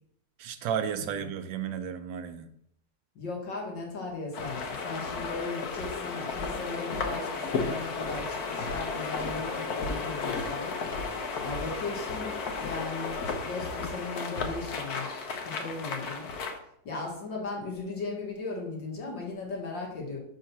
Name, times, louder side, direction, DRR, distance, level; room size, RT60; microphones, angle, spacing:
voice 1, 0.4-2.5, right 8 dB, 90° right, 1.5 m, -33 dB
voice 2, 3.2-11.1 11.4-16.3 16.8-20.2, left 3 dB, 85° left, 2.6 m, -37 dB
sound 1, 4.3-16.6, left 4 dB, 60° left, 1.4 m, -34 dB
5.6 x 5.2 x 5.9 m
omnidirectional pair, 2.0 m